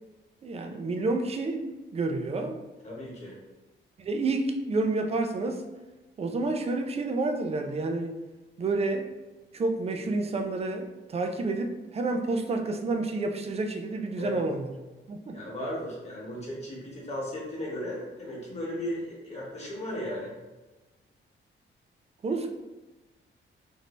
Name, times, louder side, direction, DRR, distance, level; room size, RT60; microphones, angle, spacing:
voice 1, 0.4-2.6 4.0-5.6 6.2-8.2 8.6-9.1 9.5-14.7 15.1-15.3 22.2-22.5, right 3 dB, 30° right, 5 dB, 0.3 m, -29 dB
voice 2, 2.8-3.4 14.2-14.4 15.3-20.3, left 1 dB, 30° left, -4 dB, 1.1 m, -36 dB
3.2 x 2.6 x 3.0 m, 1.2 s
wide cardioid pair, 145°, 21 cm